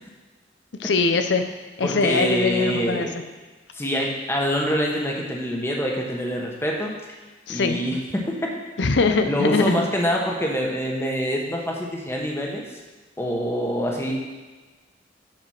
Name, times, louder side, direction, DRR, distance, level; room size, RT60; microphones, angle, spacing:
voice 1, 0.8-1.4 1.8-3.1 7.5-7.8 8.8-9.9, left 3 dB, 75° left, 7 dB, 0.6 m, -22 dB
voice 2, 1.8-3.1 3.7-7.0 7.5-8.5 9.3-12.6 13.2-14.1, equal, 15° left, -1 dB, 1.2 m, -25 dB
7.7 x 4.9 x 5.7 m, 1.3 s
head